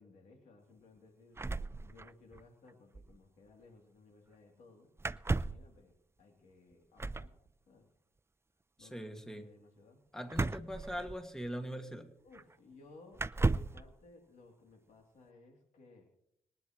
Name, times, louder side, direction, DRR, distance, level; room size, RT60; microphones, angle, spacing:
voice 1, 0.0-1.4 1.8-4.9 5.4-7.3 7.7-7.9 8.8-10.0 12.2-16.1, left 3 dB, 85° left, 2 dB, 3.0 m, -59 dB
sound 1, 1.4-2.4 2.7-2.8 2.9-3.2 5.0-5.7 7.0-7.3 10.3-11.5 12.3-12.4 13.1-13.8, right 3 dB, 20° right, 0.5 m, -34 dB
voice 2, 8.8-9.5 10.1-12.1, equal, 5° left, 6 dB, 1.9 m, -41 dB
25.5 x 9.6 x 3.1 m, 0.76 s
supercardioid pair, 50°, 12 cm